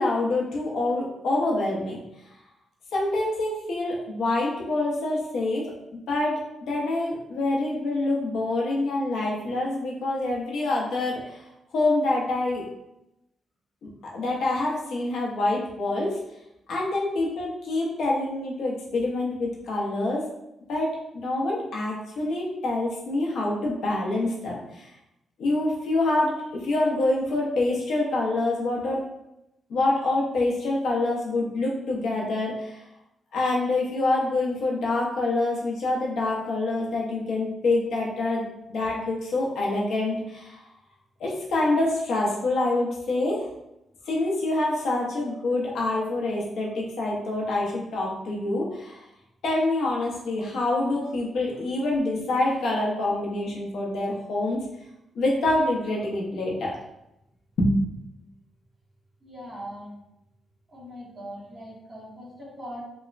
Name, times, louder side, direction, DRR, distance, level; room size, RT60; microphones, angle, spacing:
voice 1, 0.0-2.0 2.9-5.6 6.1-11.4 11.7-12.6 13.8-16.2 16.7-20.3 20.7-24.9 25.4-26.3 26.6-29.0 29.7-32.8 33.3-40.6 41.2-43.4 44.1-49.0 49.4-54.6 55.1-56.8 57.6-57.7, left 2 dB, 75° left, -3 dB, 0.6 m, -26 dB
voice 2, 59.2-60.0 60.7-62.8, equal, 20° right, -8 dB, 1.1 m, -40 dB
3.0 x 2.0 x 2.4 m, 0.86 s
wide cardioid pair, 155°, 0 cm